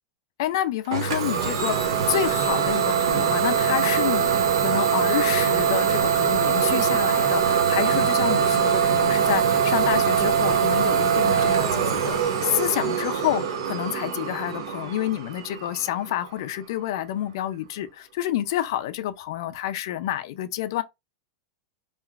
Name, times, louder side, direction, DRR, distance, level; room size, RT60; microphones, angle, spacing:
voice 1, 0.4-20.8, left 12 dB, 55° left, 0.3 m, -28 dB
Idling / Domestic sounds home sounds, 0.9-16.4, right 7 dB, 85° right, 0.7 m, -23 dB
3.0 x 2.4 x 2.3 m
supercardioid pair, 170°, 3 cm